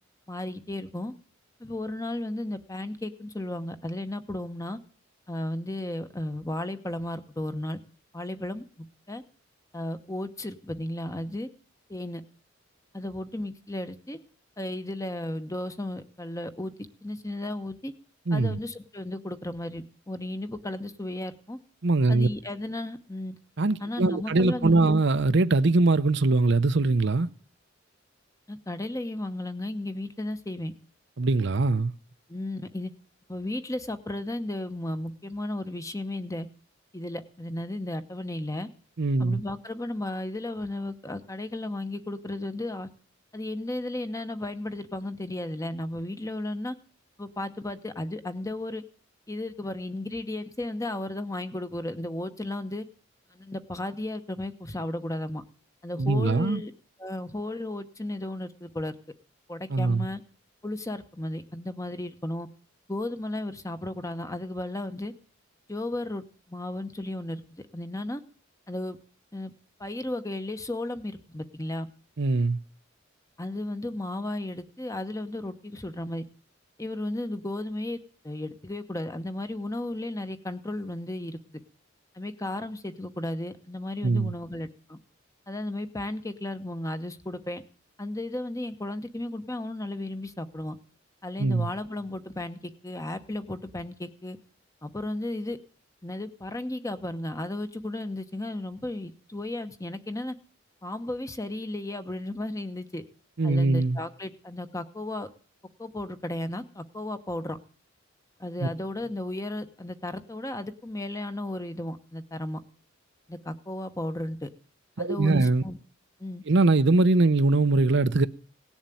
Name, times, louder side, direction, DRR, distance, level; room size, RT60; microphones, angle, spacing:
voice 1, 0.3-1.1 1.6-4.8 5.3-7.8 8.1-9.2 9.7-11.5 11.9-12.2 12.9-14.2 14.6-16.7 17.0-17.9 18.3-21.6 22.1-23.4 23.8-25.0 28.5-30.7 32.3-32.9 33.3-36.5 36.9-38.7 39.2-42.9 43.3-46.8 47.2-48.8 49.3-52.8 53.3-55.4 55.8-56.7 57.0-58.9 59.5-60.2 60.6-62.5 62.9-65.1 65.7-67.4 67.7-68.2 68.7-69.0 69.3-69.5 69.8-71.9 73.4-76.2 76.8-78.0 78.2-81.6 82.1-85.0 85.5-87.6 88.0-90.8 91.2-94.4 94.8-95.6 96.0-100.3 100.8-103.0 103.4-105.3 105.8-107.6 108.4-112.6 113.3-114.5 115.0-115.8 116.2-116.4, left 1 dB, 15° left, 1.0 m, -34 dB
voice 2, 18.3-18.6 21.8-22.3 23.6-27.3 31.2-31.9 39.0-39.4 56.0-56.6 59.7-60.1 72.2-72.6 84.0-84.3 91.4-91.7 103.4-104.0 108.6-108.7 115.0-115.6 116.5-118.3, right 3 dB, 65° right, 0.7 m, -22 dB
18.0 x 7.3 x 9.2 m
head